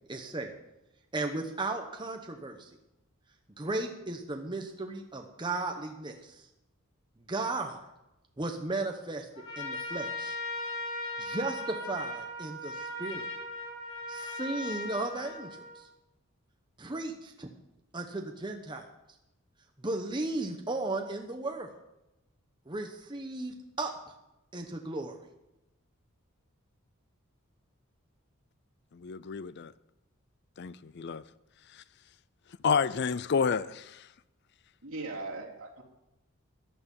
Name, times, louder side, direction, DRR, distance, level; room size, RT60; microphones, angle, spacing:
voice 1, 0.1-0.5 1.1-2.7 3.6-6.5 7.3-7.8 8.4-9.3 9.6-10.4 11.2-13.2 14.1-15.9 16.8-17.5 17.9-18.8 19.8-21.7 22.7-23.9 24.5-25.1, right 2 dB, 20° right, 1.0 m, -35 dB
Trumpet, 9.3-15.9, left 1 dB, 65° left, 5.5 m, -38 dB
voice 2, 28.9-29.7 30.6-31.2 32.6-34.0, left 6 dB, 50° left, 0.4 m, -29 dB
voice 3, 34.8-35.8, right 2 dB, 65° right, 3.3 m, -39 dB
14.5 x 10.5 x 5.4 m
head